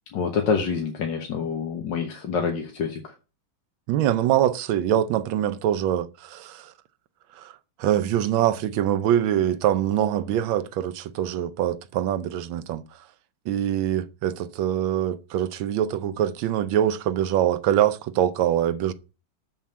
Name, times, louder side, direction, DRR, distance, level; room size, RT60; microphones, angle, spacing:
voice 1, 0.1-3.1, left 6 dB, 60° left, 1.8 m, -27 dB
voice 2, 3.9-6.7 7.4-12.8 13.5-18.9, right 11 dB, 75° right, 1.4 m, -24 dB
7.2 x 5.6 x 7.3 m
omnidirectional pair, 2.3 m